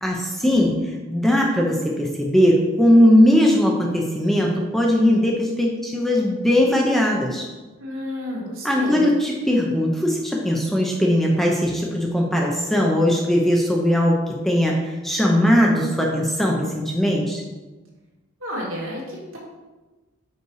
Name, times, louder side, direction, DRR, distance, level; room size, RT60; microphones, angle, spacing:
voice 1, 0.0-7.5 8.6-17.4, equal, ahead, -1 dB, 0.6 m, -19 dB
voice 2, 7.8-9.1 18.4-19.4, equal, 65° right, -4 dB, 2.1 m, -31 dB
5.5 x 5.2 x 4.6 m, 1.2 s
head